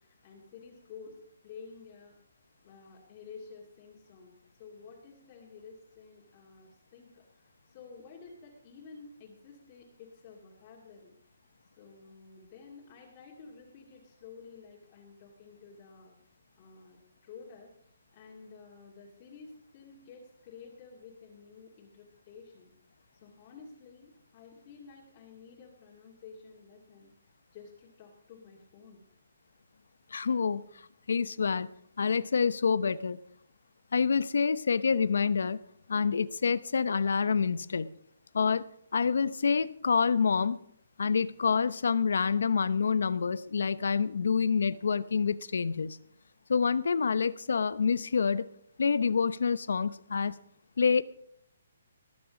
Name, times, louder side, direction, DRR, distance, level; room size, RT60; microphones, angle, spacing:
voice 1, 0.0-2.2 2.6-11.2 11.8-16.2 16.6-22.7 23.1-27.1 27.5-29.0, left 5 dB, 25° left, -3 dB, 2.3 m, -51 dB
voice 2, 30.1-30.6 31.1-31.7 32.0-33.2 33.9-35.6 35.9-37.9 38.3-38.6 38.9-40.6 41.0-46.0 46.5-48.4 48.8-50.3 50.8-51.0, left 5 dB, 75° left, 16 dB, 0.8 m, -27 dB
19.5 x 9.9 x 5.1 m, 0.69 s
hypercardioid pair, 170°, 0 cm